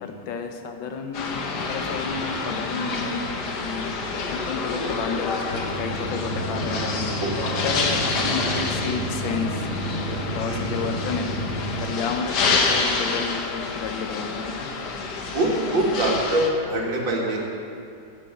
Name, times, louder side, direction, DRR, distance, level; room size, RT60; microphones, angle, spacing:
voice 1, 0.0-3.1 3.6-7.1 7.6-11.3 11.8-14.7, left 5 dB, 90° left, 5 dB, 1.7 m, -31 dB
sound 1, 1.1-16.5, left 4 dB, 65° left, 1.6 m, -28 dB
sound 2, 5.5-11.8, right 1 dB, 35° left, 2.8 m, -31 dB
voice 2, 10.5-10.8 15.3-17.4, right 1 dB, 85° right, -2 dB, 2.6 m, -24 dB
11.0 x 8.2 x 7.7 m, 2.7 s
omnidirectional pair, 2.0 m